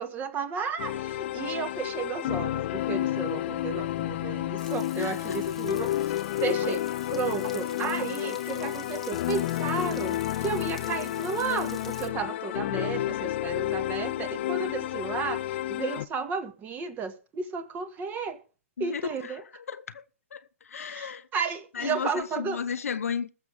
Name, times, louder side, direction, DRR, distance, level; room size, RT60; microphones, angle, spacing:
voice 1, 0.0-5.9 6.4-18.4 18.8-19.4 20.8-22.6, right 5 dB, 25° right, 1.7 m, -33 dB
sound 1, 0.8-16.1, left 14 dB, 50° left, 0.5 m, -30 dB
Frying (food), 4.6-12.1, left 2 dB, 5° left, 1.3 m, -48 dB
voice 2, 4.9-5.6 6.1-6.2 18.8-20.0 20.3-21.3 21.7-23.3, left 7 dB, 75° left, 0.9 m, -34 dB
Run, 6.6-9.2 9.5-9.6 10.9-11.1 11.4-11.5 12.1-12.2 12.5-12.7 13.2-13.3, right 3 dB, 55° right, 5.2 m, -46 dB
20.5 x 6.9 x 3.5 m
hypercardioid pair, 125°, 8 cm